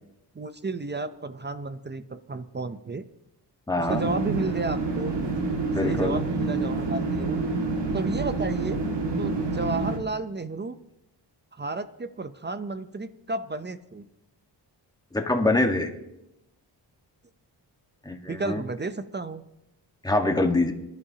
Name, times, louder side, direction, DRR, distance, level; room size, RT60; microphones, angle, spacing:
voice 1, 0.3-3.1 3.7-5.1 5.8-7.4 7.9-8.8 9.2-10.8 11.5-14.1 18.3-19.4, right 3 dB, 25° right, 11 dB, 0.6 m, -32 dB
voice 2, 3.7-4.0 5.7-6.2 15.1-15.9 18.0-18.6 20.0-20.7, left 2 dB, 10° left, 3 dB, 1.5 m, -24 dB
sound 1, 3.9-10.0, right 3 dB, 80° right, 2.0 m, -28 dB
25.0 x 11.5 x 2.9 m, 0.87 s
cardioid pair, 85°, 42 cm